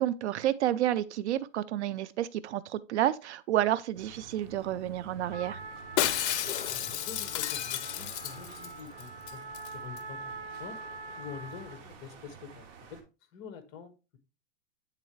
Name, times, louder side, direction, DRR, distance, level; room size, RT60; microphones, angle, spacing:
voice 1, 0.0-5.6, right 12 dB, 60° right, 0.5 m, -30 dB
sound 1, 3.9-13.0, right 6 dB, 45° right, 1.4 m, -50 dB
Trumpet, 5.3-11.9, right 3 dB, 20° right, 1.0 m, -44 dB
Shatter, 6.0-8.7 9.0-9.1 9.3-9.7 10.0-10.1, left 12 dB, 60° left, 0.6 m, -32 dB
voice 2, 6.7-10.8 11.2-13.0 13.3-14.2, left 7 dB, 30° left, 1.0 m, -46 dB
8.8 x 3.8 x 3.1 m
hypercardioid pair, 135°, 38 cm